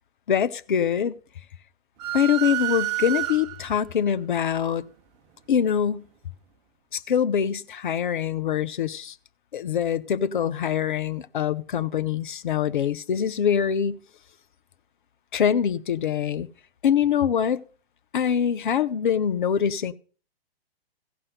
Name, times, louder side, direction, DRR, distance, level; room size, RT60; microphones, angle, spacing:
voice 1, 0.3-1.1 2.1-4.8 5.5-6.1 6.9-9.1 9.5-14.0 15.3-16.5 16.8-17.6 18.1-19.9, left 8 dB, 55° left, 0.7 m, -24 dB
sound 1, 2.0-3.8, right 15 dB, 25° right, 0.9 m, -29 dB
15.5 x 5.5 x 6.6 m
figure-of-eight pair, 115°, 31 cm